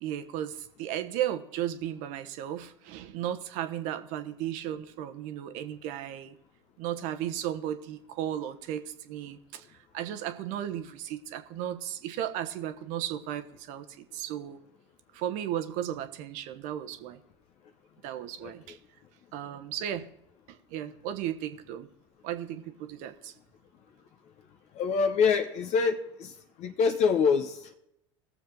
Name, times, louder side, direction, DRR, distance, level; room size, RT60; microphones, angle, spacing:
voice 1, 0.0-6.4 6.8-14.6 15.1-17.2 18.0-18.8 19.3-20.1 20.5-21.9 22.2-23.3, right 11 dB, 55° right, 10 dB, 1.1 m, -35 dB
voice 2, 24.7-26.3 26.6-27.7, left 5 dB, 45° left, 6 dB, 1.0 m, -25 dB
19.0 x 7.0 x 3.9 m, 0.81 s
hypercardioid pair, 80°, 15 cm